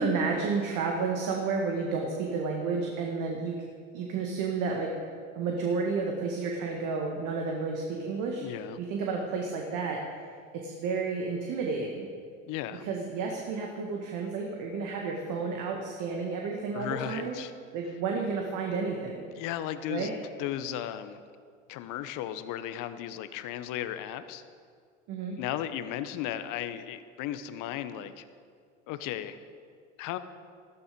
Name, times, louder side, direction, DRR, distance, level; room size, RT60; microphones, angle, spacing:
voice 1, 0.0-3.5 3.9-4.9 5.3-8.4 8.8-10.0 10.5-12.1 12.8-17.4 17.7-19.3 19.9-20.1 25.1-25.4, right 4 dB, 55° right, 1 dB, 1.9 m, -31 dB
voice 2, 8.4-8.8 12.5-12.9 16.7-17.5 19.4-20.1 20.4-21.2 21.7-24.4 25.4-28.2 28.9-29.4 30.0-30.2, left 11 dB, 60° left, 11 dB, 1.0 m, -35 dB
14.0 x 13.0 x 5.3 m, 2.1 s
hypercardioid pair, 70°, 36 cm